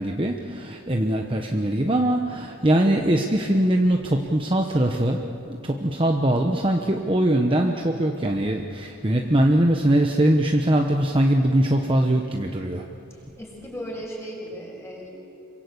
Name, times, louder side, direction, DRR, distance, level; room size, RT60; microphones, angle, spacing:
voice 1, 0.0-5.2 5.7-12.8, right 1 dB, 25° right, 2 dB, 1.0 m, -21 dB
voice 2, 13.1-15.1, equal, 10° left, -2 dB, 6.6 m, -36 dB
27.0 x 24.0 x 8.3 m, 2.8 s
head